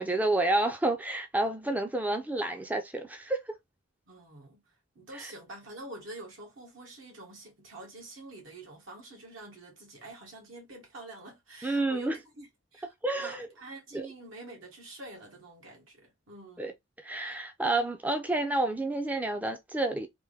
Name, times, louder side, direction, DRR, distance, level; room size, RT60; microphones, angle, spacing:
voice 1, 0.0-3.4 5.2-5.3 11.6-12.2 13.0-13.5 13.9-14.1 16.6-16.7 17.0-20.1, right 2 dB, 10° right, 0.4 m, -29 dB
voice 2, 4.1-4.6 5.0-12.5 12.7-16.7, right 1 dB, 80° right, 1.8 m, -47 dB
3.4 x 2.6 x 3.3 m
head